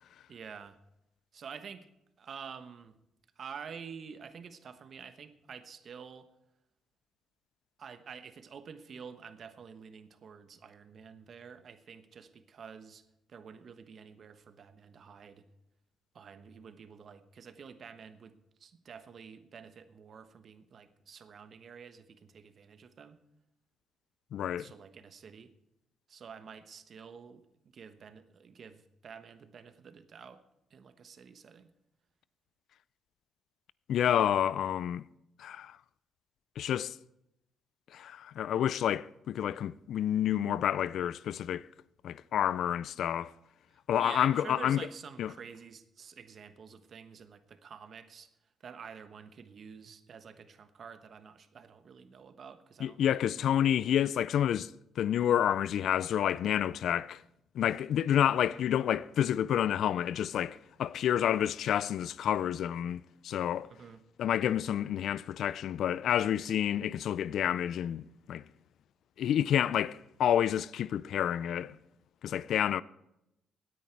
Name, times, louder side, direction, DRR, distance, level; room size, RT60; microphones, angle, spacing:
voice 1, 0.3-0.8 1.3-1.9 2.2-2.9 3.4-6.3 7.8-13.0 13.3-15.5 16.1-18.3 18.6-23.2 24.6-25.5 26.1-30.4 30.7-31.7 44.0-48.3 48.6-53.8 63.6-64.0, right 6 dB, 55° right, 1.1 m, -49 dB
voice 2, 24.3-24.7 33.9-35.0 35.4-35.8 36.6-37.0 37.9-41.7 42.0-43.3 43.9-44.8 45.2-45.3 52.8-54.7 55.0-57.2 57.5-63.7 64.2-68.4 69.2-71.8 72.2-72.8, left 10 dB, 70° left, 0.4 m, -29 dB
17.5 x 9.4 x 4.6 m
cardioid pair, 90°, 0 cm